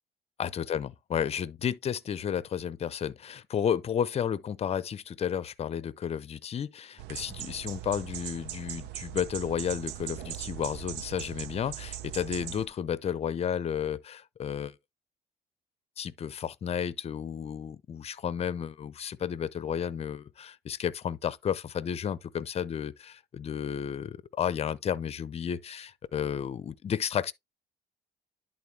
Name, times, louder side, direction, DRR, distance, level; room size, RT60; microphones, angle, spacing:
voice 1, 0.4-14.8 16.0-27.3, left 8 dB, 35° left, 0.6 m, -32 dB
sound 1, 7.0-12.7, right 13 dB, 85° right, 0.7 m, -40 dB
10.5 x 3.9 x 3.3 m
cardioid pair, 110°, 17 cm